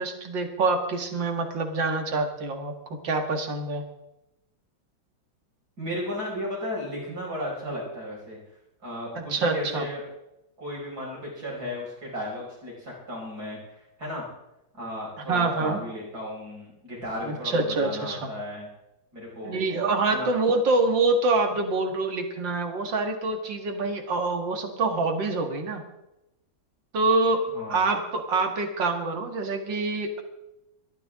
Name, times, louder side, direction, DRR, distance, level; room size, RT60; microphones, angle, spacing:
voice 1, 0.0-2.7 3.0-3.8 9.2-9.9 15.3-15.8 17.2-18.3 19.4-25.8 26.9-27.4 27.7-30.2, right 3 dB, 70° right, 5 dB, 2.6 m, -26 dB
voice 2, 5.8-8.4 8.8-10.0 10.6-14.2 14.7-18.7 19.1-19.5 20.1-20.3 27.5-27.8, left 1 dB, 50° right, -4 dB, 6.1 m, -35 dB
22.0 x 14.0 x 3.7 m, 0.90 s
omnidirectional pair, 2.1 m